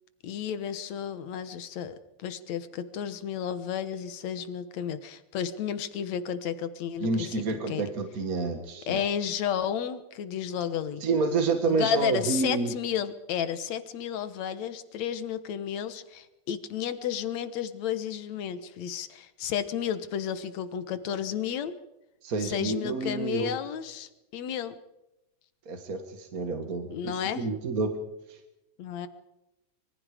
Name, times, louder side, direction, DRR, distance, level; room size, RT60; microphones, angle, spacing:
voice 1, 0.2-7.8 8.9-11.1 11.7-21.7 22.4-24.7 26.9-27.4 28.8-29.1, left 9 dB, 65° left, 12 dB, 2.4 m, -32 dB
voice 2, 7.0-9.0 11.0-12.7 22.2-23.5 25.6-28.0 28.3-28.4, right 4 dB, 40° right, 6 dB, 1.5 m, -29 dB
25.5 x 23.5 x 5.0 m, 0.93 s
omnidirectional pair, 3.5 m